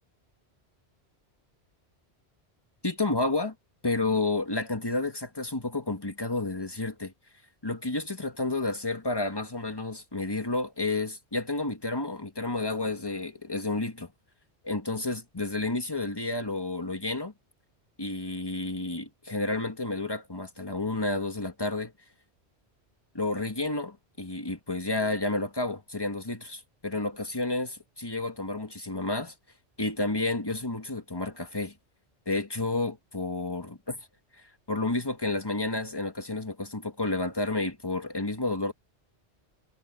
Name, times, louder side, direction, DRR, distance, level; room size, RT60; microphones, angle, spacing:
voice 1, 2.8-3.5 3.8-7.1 7.6-14.1 14.6-17.3 18.0-21.9 23.1-29.3 29.8-31.7 32.2-34.1 34.7-38.7, left 2 dB, 20° left, 1.7 m, -30 dB
omnidirectional pair, 1.1 m